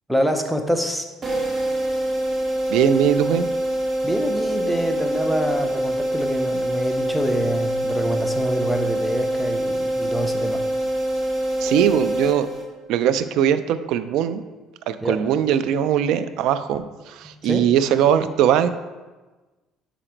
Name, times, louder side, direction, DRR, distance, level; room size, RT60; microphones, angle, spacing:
voice 1, 0.1-1.0 4.0-10.6 15.0-15.2 17.2-17.7, equal, ahead, 5 dB, 0.6 m, -26 dB
sound 1, 1.2-12.9, right 1 dB, 35° right, 1.6 m, -25 dB
voice 2, 2.7-3.5 11.6-12.5 12.9-14.4 14.9-18.7, right 9 dB, 75° right, 13 dB, 0.3 m, -20 dB
5.0 x 4.9 x 4.4 m, 1.2 s
cardioid pair, 115°, 0 cm